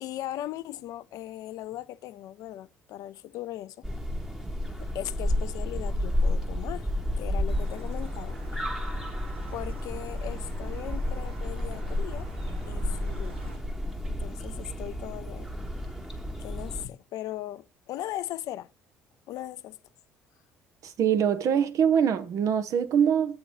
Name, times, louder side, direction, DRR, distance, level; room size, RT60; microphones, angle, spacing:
voice 1, 0.0-3.9 4.8-6.9 7.2-8.6 9.5-12.3 12.7-13.7 14.1-15.5 16.4-18.7 19.3-19.8, left 13 dB, 60° left, 0.4 m, -38 dB
sound 1, 3.8-16.9, left 1 dB, 5° right, 1.0 m, -31 dB
sound 2, 7.5-13.6, right 1 dB, 85° right, 1.4 m, -49 dB
voice 2, 20.8-23.4, right 8 dB, 50° right, 0.6 m, -24 dB
7.8 x 3.0 x 5.3 m
figure-of-eight pair, 55°, 7 cm